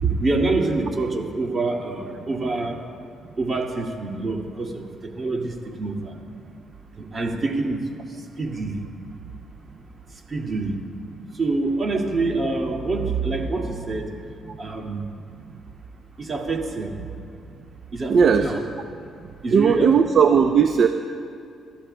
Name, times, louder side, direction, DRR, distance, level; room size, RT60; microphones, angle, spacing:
voice 1, 0.0-2.8 3.4-6.1 7.0-7.8 8.4-8.8 10.3-10.7 11.4-14.1 14.6-15.0 16.2-17.0 17.9-18.6 19.4-19.9, right 3 dB, 35° right, 1 dB, 2.1 m, -26 dB
voice 2, 18.1-18.5 19.5-20.9, right 6 dB, 55° right, 6 dB, 0.5 m, -17 dB
27.5 x 13.0 x 2.2 m, 2.5 s
cardioid pair, 90°, 0 cm